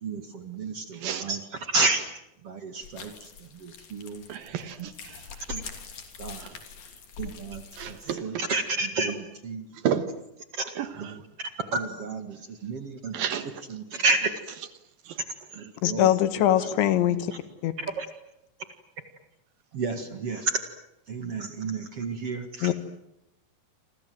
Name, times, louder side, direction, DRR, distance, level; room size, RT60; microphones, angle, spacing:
voice 1, 0.0-1.4 1.7-2.0 2.4-3.1 3.6-4.2 4.8-4.9 5.5-5.6 6.2-6.4 7.2-7.6 7.9-9.7 10.6-10.7 11.0-11.1 11.7-12.4 12.6-13.1 13.7-14.3 15.6-16.1 17.1-17.2 18.0-18.1 19.7-20.6 21.1-22.7, right 3 dB, 45° right, 2.2 m, -30 dB
voice 2, 0.9-1.3 4.3-5.2 6.4-6.6 7.8-8.5 9.7-10.1 10.8-11.2 13.1-13.6 13.9-14.0 15.1-15.2 15.5-15.7, right 8 dB, 65° right, 2.8 m, -32 dB
sound 1, 2.8-8.1, left 5 dB, 45° left, 4.2 m, -44 dB
voice 3, 15.8-17.3 17.6-17.7 22.6-22.7, left 13 dB, 90° left, 3.9 m, -22 dB
29.0 x 26.0 x 7.8 m
omnidirectional pair, 5.1 m